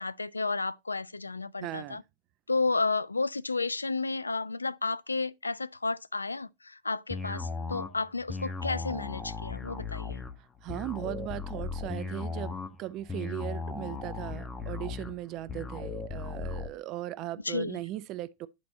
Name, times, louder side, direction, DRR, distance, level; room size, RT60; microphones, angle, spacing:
voice 1, 0.0-2.0 2.5-10.2 17.4-17.8, left 3 dB, 80° left, 0.3 m, -32 dB
voice 2, 1.6-2.0 10.4-12.5 12.8-18.5, right 14 dB, 40° right, 0.5 m, -38 dB
sound 1, 7.1-16.7, left 4 dB, 15° left, 1.4 m, -37 dB
9.2 x 4.2 x 4.1 m
figure-of-eight pair, 90°, 0 cm